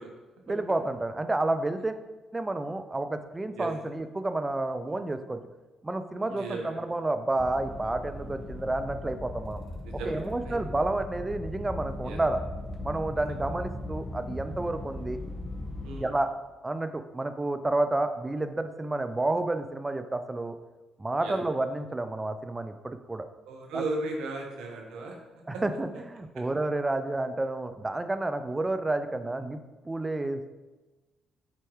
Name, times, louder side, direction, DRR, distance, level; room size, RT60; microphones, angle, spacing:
voice 1, 0.5-1.9 2.3-5.4 5.8-9.6 10.0-12.4 12.8-15.2 16.0-16.3 16.6-20.6 21.0-23.3 23.7-23.8 25.5-29.6 29.8-30.5, right 2 dB, 20° right, 9 dB, 0.5 m, -30 dB
voice 2, 6.3-6.7 9.8-10.2 10.4-10.5 12.0-12.2 15.8-16.1 21.2-21.3 23.5-25.1 25.5-25.6, right 3 dB, 80° right, 1 dB, 1.2 m, -35 dB
sound 1, 7.4-16.0, left 1 dB, 20° left, 1.3 m, -38 dB
7.9 x 4.5 x 3.2 m, 1.2 s
hypercardioid pair, 55°, 0 cm